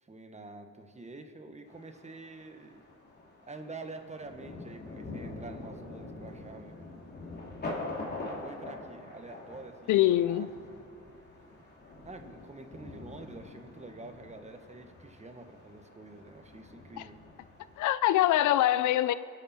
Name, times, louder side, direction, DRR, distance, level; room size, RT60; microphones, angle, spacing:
voice 1, 0.0-2.8 3.4-6.8 8.2-10.5 10.7-10.9 12.0-17.2, right 3 dB, 25° right, 1.3 m, -47 dB
Thunder, 1.7-17.8, left 2 dB, 35° left, 2.8 m, -45 dB
voice 2, 9.9-10.5 17.0-17.1 17.8-19.1, left 13 dB, 80° left, 0.5 m, -24 dB
25.0 x 8.5 x 4.2 m
cardioid pair, 90°, 30 cm